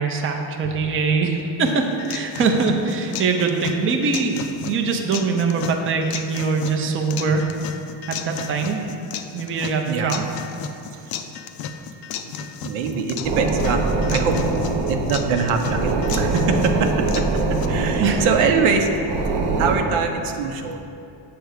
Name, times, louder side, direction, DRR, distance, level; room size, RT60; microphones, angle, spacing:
voice 1, 0.0-7.5 8.1-8.8 9.3-10.3 18.0-18.2, right 4 dB, 25° right, 3 dB, 0.5 m, -22 dB
sound 1, 1.7-17.7, left 7 dB, 50° left, 0.4 m, -34 dB
voice 2, 12.4-14.4 14.9-18.9 19.6-20.8, right 5 dB, 85° right, 5 dB, 0.8 m, -23 dB
sound 2, 13.2-19.8, right 3 dB, 55° right, 1.0 m, -23 dB
7.8 x 3.4 x 6.4 m, 2.6 s
cardioid pair, 145°, 50 cm